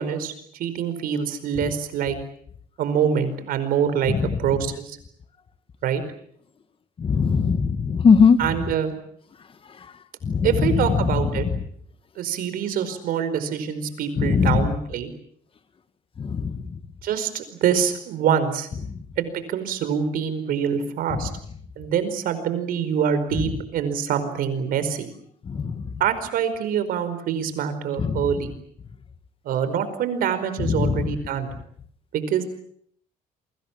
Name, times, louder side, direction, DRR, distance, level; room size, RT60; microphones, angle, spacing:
voice 1, 0.0-2.2 2.8-4.1 4.4-5.0 5.8-6.0 8.4-8.9 10.4-11.5 12.2-15.1 17.0-18.7 19.2-21.3 21.8-25.1 26.0-28.5 29.4-31.5 32.1-32.4, right 8 dB, 80° right, 12 dB, 4.9 m, -25 dB
voice 2, 7.0-8.4 10.2-10.7 14.2-14.7 16.2-16.5 25.5-25.8 28.0-28.2 30.7-31.0, left 5 dB, 40° left, 11 dB, 2.0 m, -19 dB
28.5 x 24.5 x 7.4 m, 0.64 s
cardioid pair, 115°, 15 cm